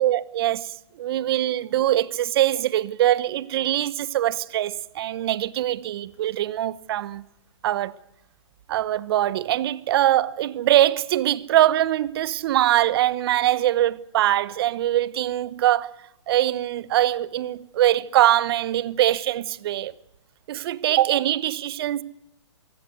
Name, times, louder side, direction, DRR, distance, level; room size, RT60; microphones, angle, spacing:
voice 1, 0.0-7.2 7.6-7.9 8.7-15.9 16.3-19.9 20.5-22.0, right 13 dB, 50° right, 1.1 m, -22 dB
23.5 x 16.5 x 8.1 m
hypercardioid pair, 130°, 16 cm